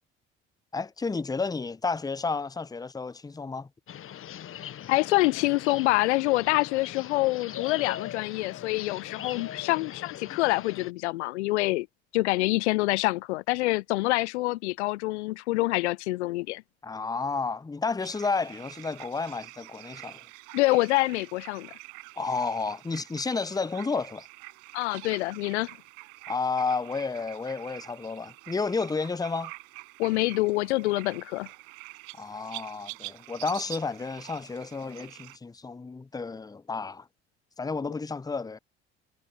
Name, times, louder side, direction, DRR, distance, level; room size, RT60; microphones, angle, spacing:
voice 1, 0.7-3.7 16.8-20.2 22.2-24.3 26.3-29.5 32.2-37.1 37.6-38.6, left 4 dB, 10° left, 0.7 m, -31 dB
sound 1, 3.9-10.9, left 11 dB, 40° left, 0.9 m, -40 dB
voice 2, 4.9-11.9 12.1-16.6 20.5-21.7 24.7-25.7 30.0-31.5, left 20 dB, 75° left, 0.5 m, -26 dB
sound 2, 18.0-35.4, right 34 dB, 70° right, 5.3 m, -46 dB
figure-of-eight pair, 55°, 34 cm